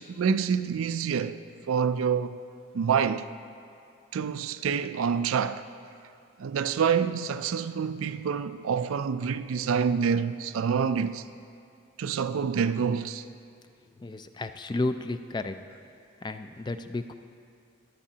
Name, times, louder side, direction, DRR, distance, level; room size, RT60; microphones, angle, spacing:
voice 1, 0.0-1.4 1.7-2.4 2.7-3.2 4.1-5.6 6.4-11.2 12.0-13.2, right 6 dB, 85° right, 0.4 m, -27 dB
voice 2, 14.0-15.6 16.2-17.1, left 2 dB, 20° left, 0.3 m, -32 dB
16.0 x 11.0 x 2.8 m
head